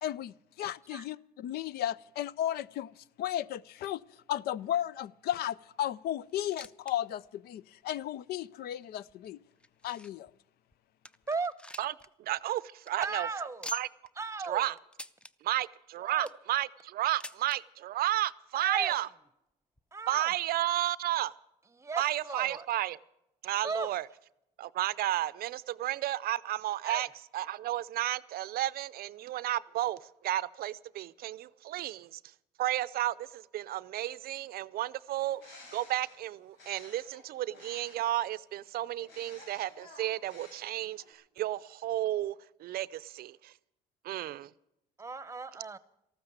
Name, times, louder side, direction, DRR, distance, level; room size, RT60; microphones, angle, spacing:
voice 1, 0.0-9.4 9.8-10.3, left 12 dB, 70° left, 0.5 m, -35 dB
sound 1, 6.3-7.0 7.2-7.3 8.0-8.1 8.8-10.3 10.7-10.8 11.0-12.1 12.4-12.5 12.7-12.9 13.6-14.1 14.9-15.3 15.9-16.5 17.2-17.6 18.5-18.6 18.8-18.9 19.8-19.9, left 1 dB, 5° left, 0.5 m, -45 dB
voice 2, 12.2-13.3 13.7-13.9 14.4-14.8 15.5-15.7 15.9-19.1 20.1-21.3 22.0-23.0 23.4-24.1 24.6-27.1 27.3-32.2 32.6-43.5 44.0-44.5, right 14 dB, 65° right, 0.5 m, -32 dB
voice 3, 13.0-13.7 14.2-14.7 16.0-16.3 18.6-18.9 19.9-20.3 21.8-22.6 23.6-23.9 26.8-27.0 45.0-45.8, right 4 dB, 15° right, 0.9 m, -36 dB
Bird, 35.1-38.2 39.0-41.1, left 2 dB, 90° left, 5.5 m, -54 dB
14.0 x 13.0 x 8.0 m
cardioid pair, 110°, 17 cm